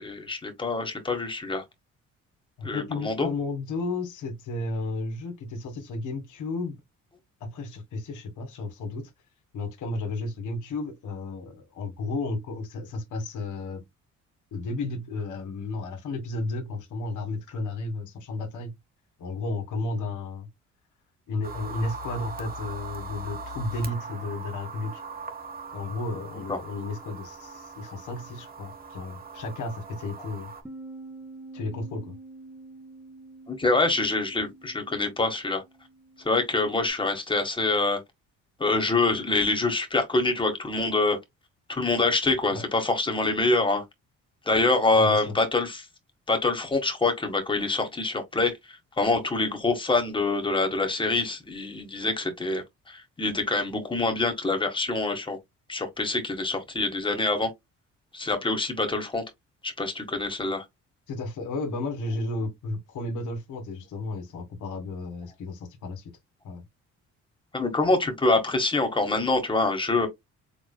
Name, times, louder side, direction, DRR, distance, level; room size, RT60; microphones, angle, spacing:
voice 1, 0.0-1.6 2.6-3.3 33.5-35.6 36.2-38.0 38.6-41.2 41.7-43.8 44.5-45.8 46.3-48.5 49.0-55.4 55.7-57.5 58.1-59.2 59.6-60.6 67.5-70.1, left 3 dB, 15° left, 1.4 m, -25 dB
voice 2, 2.6-6.8 7.4-9.1 9.5-13.8 14.5-18.7 19.2-20.5 21.3-25.0 25.7-30.5 31.5-32.1 42.5-42.6 44.9-45.3 61.1-66.1 66.4-66.6, left 2 dB, 80° left, 1.7 m, -33 dB
sound 1, 21.4-30.6, right 3 dB, 30° right, 1.3 m, -40 dB
Bass guitar, 30.6-36.9, right 2 dB, 5° right, 0.8 m, -47 dB
4.7 x 3.7 x 2.2 m
cardioid pair, 90°, 30 cm